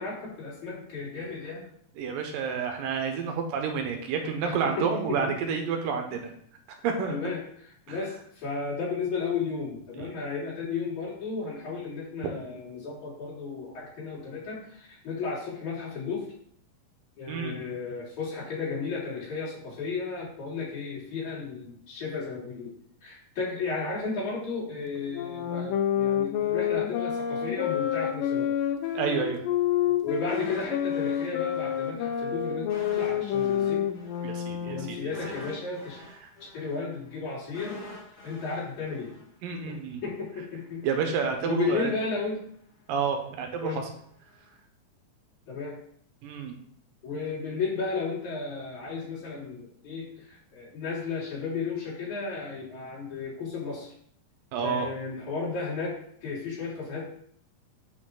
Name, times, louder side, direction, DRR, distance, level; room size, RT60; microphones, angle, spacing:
voice 1, 0.0-1.7 4.4-5.2 7.1-16.3 17.2-22.7 23.0-28.5 29.8-33.9 34.7-36.0 36.4-37.8 38.2-39.1 39.6-40.9 41.4-42.4 43.6-43.8 45.5-45.8 47.0-53.9 54.6-57.1, left 4 dB, 60° left, -7 dB, 4.5 m, -34 dB
voice 2, 2.0-6.3 6.8-7.1 7.9-8.0 10.0-10.1 17.3-17.6 28.9-29.4 34.2-35.1 39.4-40.0 40.8-41.9 42.9-43.7 46.2-46.5 54.5-54.9, right 6 dB, 85° right, 4 dB, 2.8 m, -29 dB
sound 1, 25.1-35.1, left 10 dB, 85° left, 2.4 m, -28 dB
sound 2, 30.3-31.9 32.2-32.3 32.7-39.8 40.1-40.2, left 2 dB, 25° left, 2.2 m, -45 dB
8.9 x 5.1 x 3.9 m, 0.64 s
omnidirectional pair, 3.9 m